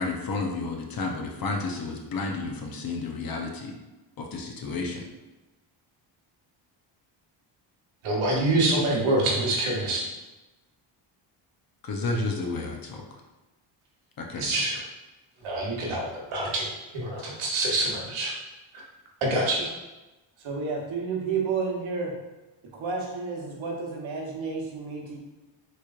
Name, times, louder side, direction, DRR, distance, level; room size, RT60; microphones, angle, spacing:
voice 1, 0.0-3.7 4.2-5.1 11.8-13.0 14.2-14.6, left 3 dB, 45° left, 1 dB, 0.7 m, -31 dB
voice 2, 8.0-10.0 14.3-14.7 15.4-18.3 19.2-19.7, right 2 dB, 90° right, -3 dB, 1.2 m, -26 dB
voice 3, 20.4-22.1 22.7-25.2, right 5 dB, 70° right, -1 dB, 1.0 m, -31 dB
4.0 x 3.2 x 2.4 m, 1.1 s
cardioid pair, 100°, 49 cm